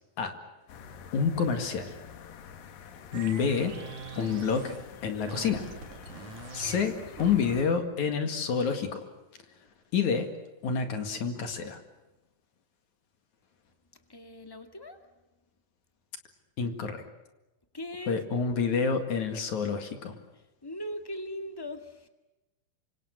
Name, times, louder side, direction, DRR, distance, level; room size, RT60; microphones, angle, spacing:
sound 1, 0.7-7.6, left 7 dB, 75° left, 3.3 m, -48 dB
voice 1, 1.1-2.0 3.1-3.7 4.2-4.7 5.0-5.7 6.5-9.0 9.9-10.3 10.6-11.8 16.6-17.0 18.1-20.2, left 6 dB, 60° left, 7 dB, 3.3 m, -28 dB
sound 2, 3.1-4.9 5.3-7.8, right 4 dB, 60° right, 3.8 m, -43 dB
voice 2, 14.1-15.0 17.7-18.2 20.6-22.1, equal, 10° left, 6 dB, 1.0 m, -39 dB
28.0 x 26.0 x 6.4 m, 1.0 s
omnidirectional pair, 4.1 m